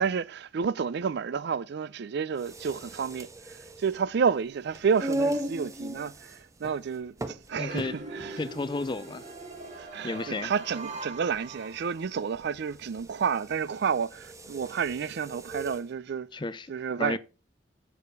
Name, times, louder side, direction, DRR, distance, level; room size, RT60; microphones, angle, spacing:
voice 1, 0.0-8.4 9.8-16.3 16.7-17.2, right 6 dB, 60° right, 0.4 m, -30 dB
sound 1, 2.3-15.9, right 1 dB, 15° right, 0.7 m, -38 dB
voice 2, 7.6-8.0 8.4-9.2 10.0-10.5 16.3-16.7 17.0-17.2, left 3 dB, 25° left, 0.5 m, -32 dB
sound 2, 7.7-12.3, right 2 dB, 40° right, 1.7 m, -42 dB
7.0 x 6.8 x 4.7 m
head